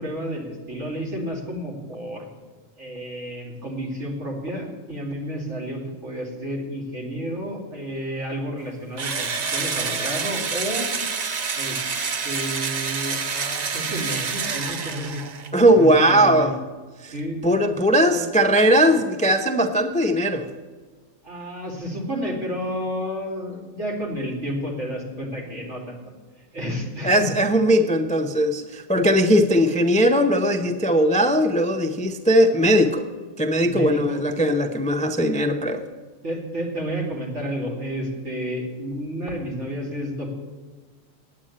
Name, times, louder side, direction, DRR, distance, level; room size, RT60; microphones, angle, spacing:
voice 1, 0.0-2.2 2.8-10.9 11.5-11.8 12.2-15.2 15.8-16.5 17.1-17.7 18.0-18.3 21.2-26.0 26.5-27.3 33.6-34.2 36.2-40.4, equal, 65° right, -2 dB, 3.0 m, -31 dB
Engine / Drill, 9.0-15.5, right 5 dB, 40° right, 0.6 m, -28 dB
voice 2, 15.5-16.5 17.0-17.1 17.4-20.5 27.0-33.1 33.4-35.8, equal, 10° left, 6 dB, 0.4 m, -19 dB
9.4 x 8.8 x 8.5 m, 1.4 s
omnidirectional pair, 1.3 m